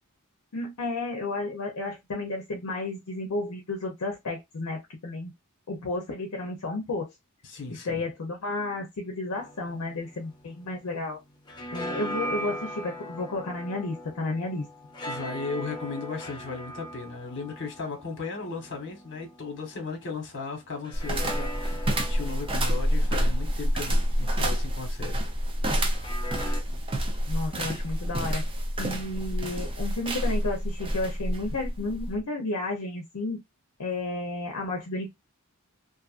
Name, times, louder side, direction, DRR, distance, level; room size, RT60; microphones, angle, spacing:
voice 1, 0.5-5.3 5.7-7.1 7.7-11.2 11.7-14.7 27.3-28.4 28.8-33.4 33.8-35.1, left 2 dB, 75° left, 0.6 m, -32 dB
voice 2, 7.5-8.0 15.1-25.2, left 4 dB, 55° left, 1.1 m, -36 dB
sound 1, 9.3-11.0 11.3-20.0 20.8-24.9 25.9-26.6, equal, 20° left, 0.6 m, -40 dB
sound 2, 20.9-32.2, equal, 25° right, 0.5 m, -28 dB
2.6 x 2.4 x 2.4 m
head